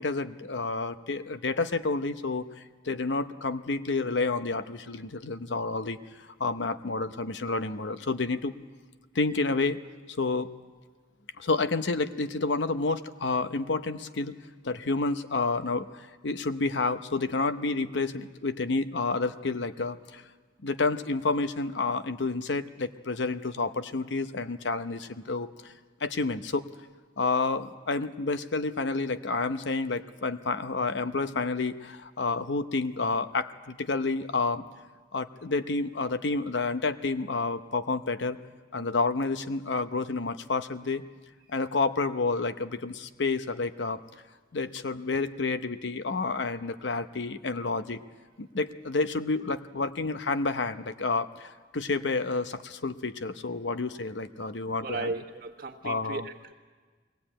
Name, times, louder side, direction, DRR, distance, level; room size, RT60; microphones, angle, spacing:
voice 1, 0.0-6.0 6.4-8.5 9.1-9.8 10.1-10.5 11.4-14.3 14.6-20.2 20.6-25.7 26.0-26.6 27.2-34.6 35.1-38.4 38.7-41.0 41.5-44.0 44.5-48.0 48.4-55.1 55.8-56.3, left 3 dB, 75° left, 11 dB, 0.8 m, -29 dB
voice 2, 54.8-56.5, right 3 dB, 55° right, 2 dB, 1.5 m, -36 dB
22.0 x 17.5 x 8.8 m, 1.4 s
head